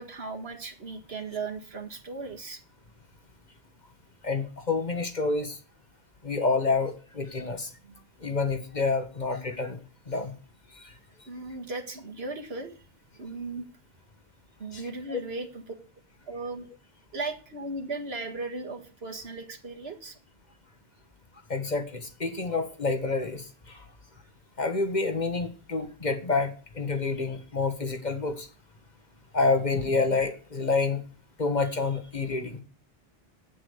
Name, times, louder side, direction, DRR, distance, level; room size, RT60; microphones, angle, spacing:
voice 1, 0.0-2.6 7.8-8.0 11.3-12.8 13.2-13.7 14.6-15.6 16.3-16.7 17.1-20.1, right 3 dB, 80° right, 3 dB, 2.1 m, -37 dB
voice 2, 4.2-5.6 6.2-7.7 8.2-9.8 10.1-10.3 10.7-10.9 14.7-14.8 15.1-15.2 21.5-23.8 24.6-28.5 29.3-31.0 31.4-32.6, left 3 dB, 45° left, 7 dB, 1.7 m, -28 dB
8.7 x 8.3 x 8.2 m, 0.38 s
omnidirectional pair, 1.0 m